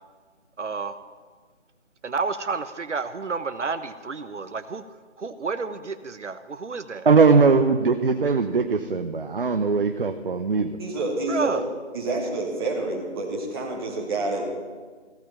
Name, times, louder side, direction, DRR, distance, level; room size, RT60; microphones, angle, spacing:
voice 1, 0.6-0.9 2.0-4.8 5.2-7.1 11.3-11.6, right 4 dB, 80° right, 11 dB, 1.0 m, -30 dB
voice 2, 7.0-10.8, right 4 dB, 50° right, 8 dB, 0.8 m, -20 dB
voice 3, 10.8-11.6 11.9-14.4, right 2 dB, 20° right, -2 dB, 2.3 m, -28 dB
15.5 x 10.0 x 7.2 m, 1.5 s
figure-of-eight pair, 165°, 35 cm